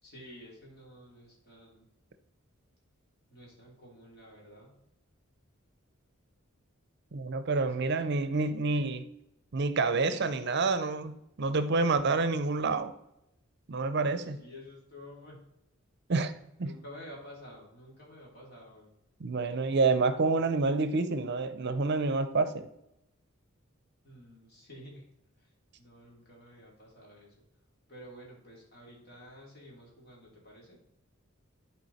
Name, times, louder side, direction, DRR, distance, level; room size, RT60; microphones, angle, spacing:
voice 1, 0.0-1.9 3.3-4.8 7.6-7.9 14.0-15.4 16.6-18.9 24.0-25.1 25.4-25.5 25.8-27.3 27.9-30.8, equal, 50° left, -3 dB, 3.4 m, -51 dB
voice 2, 7.1-9.1 9.5-12.9 13.7-14.4 16.1-16.3 16.6-16.7 19.2-22.7, right 3 dB, 55° right, 11 dB, 0.6 m, -28 dB
11.0 x 4.6 x 4.1 m, 0.83 s
head